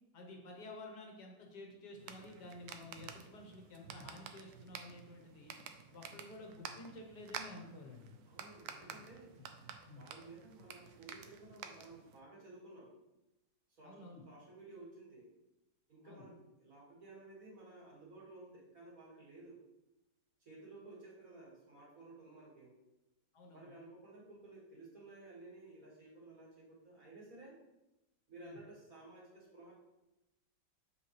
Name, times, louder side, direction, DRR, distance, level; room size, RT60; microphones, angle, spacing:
voice 1, 0.1-5.5 5.9-8.2 8.8-9.5 9.9-10.0 13.8-14.2 16.0-16.3 23.3-23.7 28.4-28.6, left 2 dB, 65° left, 1 dB, 1.6 m, -52 dB
sound 1, 2.0-12.2, right 7 dB, 70° right, 1.0 m, -51 dB
voice 2, 8.3-9.3 9.9-12.9 13.7-15.3 15.9-19.6 20.4-22.8 23.5-27.6 28.3-29.7, right 2 dB, 50° right, -5 dB, 2.4 m, -55 dB
7.1 x 5.5 x 3.2 m, 0.95 s
omnidirectional pair, 1.9 m